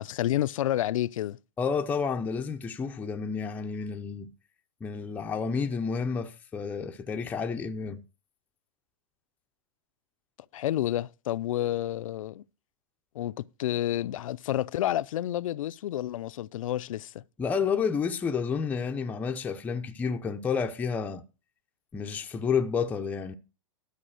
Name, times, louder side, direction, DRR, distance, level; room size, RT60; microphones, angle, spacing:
voice 1, 0.0-1.4 10.5-12.4 13.1-17.2, left 13 dB, 75° left, 0.5 m, -30 dB
voice 2, 1.6-4.3 4.8-8.0 17.4-21.2 21.9-23.3, left 6 dB, 10° left, 0.5 m, -30 dB
12.5 x 4.9 x 6.4 m
hypercardioid pair, 150°, 17 cm